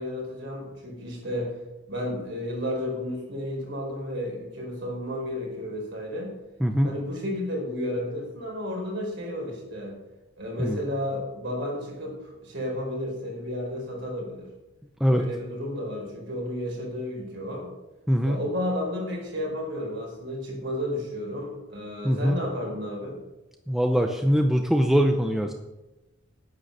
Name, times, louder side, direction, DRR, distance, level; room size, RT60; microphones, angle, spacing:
voice 1, 0.0-1.5 1.9-6.3 6.8-10.0 10.4-14.5 15.1-17.7 18.2-23.2, left 1 dB, 55° right, -1 dB, 4.7 m, -32 dB
voice 2, 6.6-6.9 10.6-10.8 15.0-15.2 18.1-18.4 22.0-22.4 23.7-25.5, equal, ahead, 4 dB, 0.6 m, -22 dB
9.6 x 9.3 x 6.6 m, 1.1 s
head